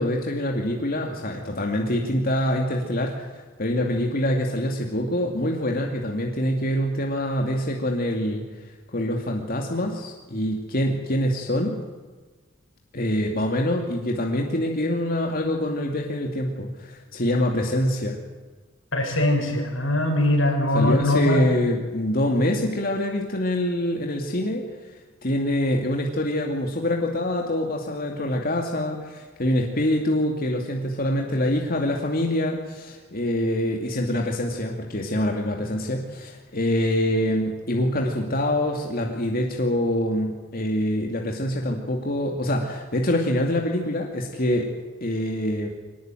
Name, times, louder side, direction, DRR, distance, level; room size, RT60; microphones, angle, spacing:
voice 1, 0.0-8.4 8.9-11.8 12.9-18.2 20.7-24.6 25.2-44.7 45.0-45.7, left 1 dB, 50° left, 1 dB, 2.5 m, -25 dB
voice 2, 18.9-21.4, left 1 dB, 85° left, 2 dB, 6.9 m, -22 dB
24.5 x 19.0 x 9.2 m, 1.3 s
head